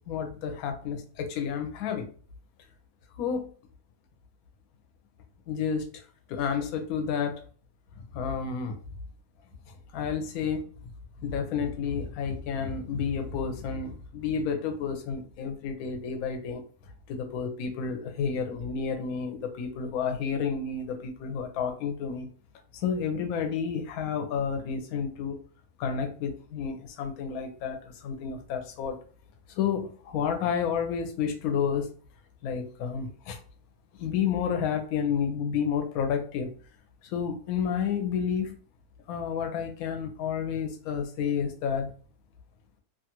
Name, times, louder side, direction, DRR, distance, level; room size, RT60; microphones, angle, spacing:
voice 1, 0.1-2.1 3.2-3.5 5.5-6.0 6.3-7.4 8.0-8.8 9.9-10.7 11.2-16.6 17.1-22.3 22.7-25.4 25.8-29.0 29.5-31.9 32.4-33.4 34.0-36.5 37.0-38.5 39.1-41.9, left 6 dB, 70° left, 5 dB, 1.0 m, -30 dB
2.8 x 2.4 x 2.8 m, 0.41 s
omnidirectional pair, 1.8 m